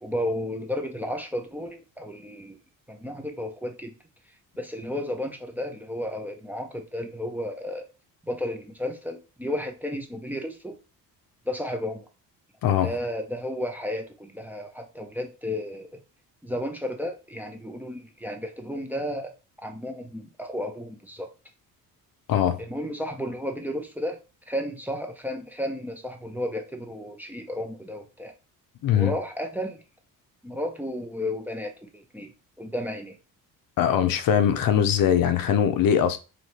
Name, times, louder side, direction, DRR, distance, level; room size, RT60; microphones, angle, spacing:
voice 1, 0.0-2.6 2.9-3.9 4.6-7.9 8.2-10.8 11.5-12.1 12.8-15.9 16.4-19.3 19.6-21.3 22.6-24.2 24.5-28.3 28.9-29.8 30.4-33.2, left 1 dB, 5° right, 0.6 m, -33 dB
voice 2, 12.6-12.9 22.3-22.6 28.8-29.1 33.8-36.2, left 9 dB, 65° left, 0.6 m, -21 dB
3.2 x 2.8 x 4.2 m
cardioid pair, 120°, 36 cm